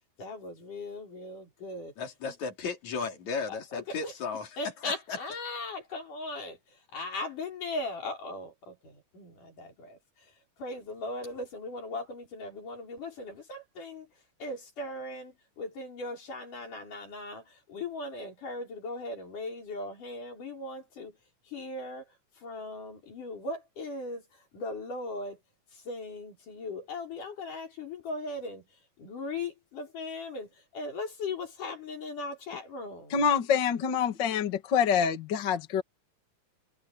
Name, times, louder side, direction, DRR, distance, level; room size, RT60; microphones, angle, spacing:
voice 1, 0.2-1.9 3.5-4.1 4.6-21.2 21.5-25.4 25.7-33.2, left 2 dB, 85° left, 7.4 m, -39 dB
voice 2, 2.0-4.5 4.8-5.2, left 5 dB, 65° left, 4.7 m, -35 dB
voice 3, 33.1-35.8, left 7 dB, 40° left, 2.0 m, -26 dB
omnidirectional pair, 3.5 m